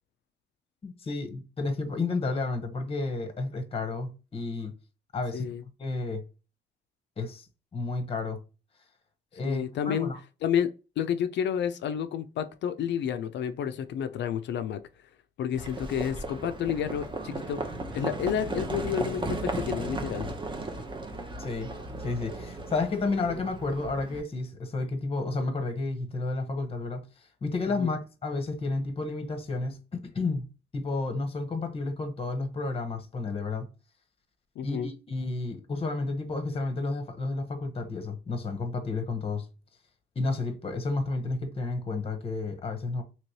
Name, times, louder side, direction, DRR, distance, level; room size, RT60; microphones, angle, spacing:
voice 1, 0.8-4.7 5.1-5.5 5.8-6.2 7.2-7.5 7.7-8.4 9.3-10.2 21.4-21.7 22.0-30.5 30.7-33.7 34.6-39.5 40.2-43.0, left 3 dB, 30° left, 0.8 m, -31 dB
voice 2, 9.4-10.1 10.4-10.7 11.0-14.8 15.4-17.6 17.9-20.3 27.8-27.9 34.6-34.9, left 8 dB, 65° left, 0.4 m, -30 dB
Livestock farm animals working animals, 15.5-24.2, right 2 dB, 25° right, 0.7 m, -36 dB
3.1 x 2.9 x 2.7 m
cardioid pair, 90°, 20 cm